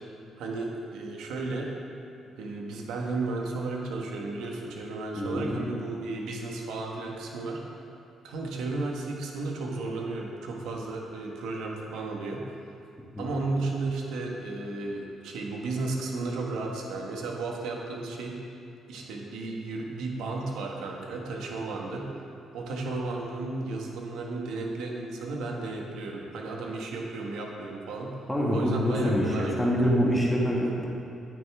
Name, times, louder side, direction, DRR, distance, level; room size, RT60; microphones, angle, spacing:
voice 1, 0.4-1.7 2.4-7.8 8.2-12.4 13.2-18.4 18.9-22.1 22.5-28.2 28.5-29.9, right 3 dB, 85° right, 0 dB, 1.4 m, -34 dB
voice 2, 5.2-5.6 13.2-13.3 28.3-30.9, equal, 5° left, -4 dB, 2.1 m, -25 dB
9.9 x 9.2 x 3.6 m, 2.6 s
cardioid pair, 90°, 0 cm